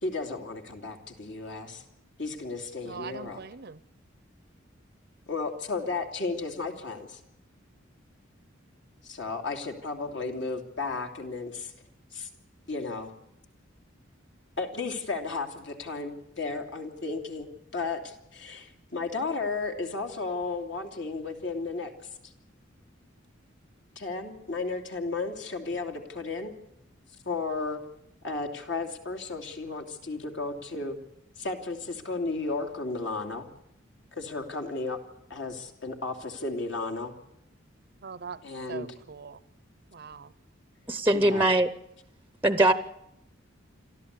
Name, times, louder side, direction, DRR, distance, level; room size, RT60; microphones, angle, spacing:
voice 1, 0.0-1.8 2.2-3.4 5.3-7.2 9.0-11.7 12.1-12.3 12.7-13.1 14.6-21.9 24.0-26.5 27.2-27.8 28.2-31.0 31.4-33.5 34.1-35.0 35.3-37.1 38.4-38.9 41.1-41.5, left 3 dB, 65° left, 4 dB, 2.8 m, -34 dB
voice 2, 2.8-3.8 38.0-38.4 38.7-39.4 39.9-40.3, right 5 dB, 55° right, 16 dB, 0.7 m, -41 dB
voice 3, 40.9-41.7 42.4-42.7, right 1 dB, 10° right, 12 dB, 0.7 m, -21 dB
27.0 x 13.0 x 8.3 m, 0.81 s
head